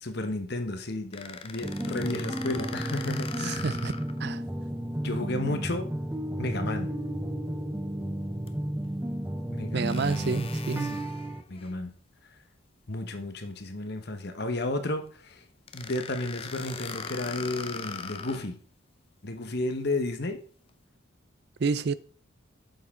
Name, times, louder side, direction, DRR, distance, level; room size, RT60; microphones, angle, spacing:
voice 1, 0.0-3.7 5.0-5.9 6.4-7.0 9.5-10.4 10.9-11.0 11.5-11.9 12.9-15.4 15.7-18.6 19.2-20.4, left 2 dB, 50° left, 1.1 m, -33 dB
sound 1, 1.1-4.2 4.7-4.8 8.5-8.6 9.9-11.8 15.7-18.5, left 5 dB, 30° left, 0.6 m, -40 dB
sound 2, 1.6-11.4, right 1 dB, 10° right, 0.7 m, -33 dB
voice 2, 3.4-3.9 4.2-4.4 9.7-11.0 21.6-22.0, right 4 dB, 50° right, 0.4 m, -29 dB
9.0 x 6.9 x 3.7 m
head